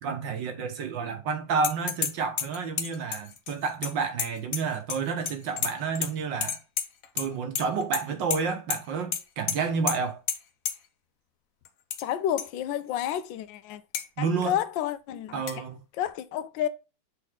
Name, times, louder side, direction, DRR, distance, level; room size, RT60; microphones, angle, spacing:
voice 1, 0.0-6.6 7.2-10.2 14.2-14.6 15.3-15.8, right 5 dB, 70° right, 1.9 m, -30 dB
sound 1, 1.6-2.1 2.4-5.0 5.3-6.1 6.4-7.3 7.5-8.0 8.3-8.4 8.7-8.8 9.1-9.2 9.5-9.6 9.9-10.0 10.3-10.4 10.6-10.7 11.6-12.0 12.4-12.5 13.0-13.1 13.9-14.1 15.5-15.6, left 8 dB, 60° left, 1.0 m, -30 dB
voice 2, 12.0-13.8 14.2-15.4 16.0-16.7, left 11 dB, 75° left, 1.4 m, -30 dB
7.0 x 4.1 x 3.6 m
omnidirectional pair, 2.1 m